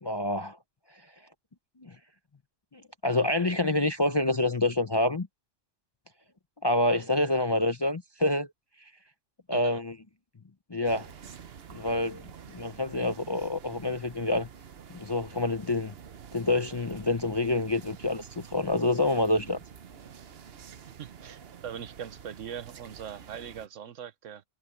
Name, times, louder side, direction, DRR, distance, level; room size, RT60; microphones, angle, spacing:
voice 1, 0.0-0.6 1.8-2.0 2.7-5.3 6.6-8.5 9.5-10.0 10.7-11.1 11.7-14.5 14.9-15.9 16.3-19.6, left 2 dB, 30° left, 0.5 m, -27 dB
sound 1, 10.8-23.7, right 7 dB, 55° right, 1.1 m, -48 dB
voice 2, 21.0-24.4, right 8 dB, 80° right, 1.2 m, -41 dB
omnidirectional pair, 1.3 m